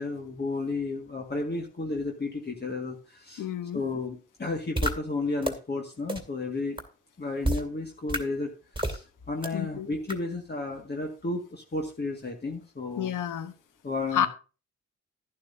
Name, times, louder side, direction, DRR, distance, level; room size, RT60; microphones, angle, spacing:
voice 1, 0.0-3.5 3.7-6.8 7.2-8.5 8.8-13.1 13.8-14.3, left 3 dB, 30° left, 1.9 m, -32 dB
voice 2, 3.4-3.8 9.5-9.9 13.0-13.5 14.1-14.3, left 9 dB, 60° left, 1.1 m, -29 dB
sound 1, 4.8-4.9 5.4-5.5 6.1-6.2 6.8-6.9 7.4-7.6 8.1-8.2 8.8-9.0 9.4-9.5 10.1-10.2, right 1 dB, 15° right, 2.4 m, -27 dB
11.5 x 11.0 x 2.7 m
hypercardioid pair, 40°, 35 cm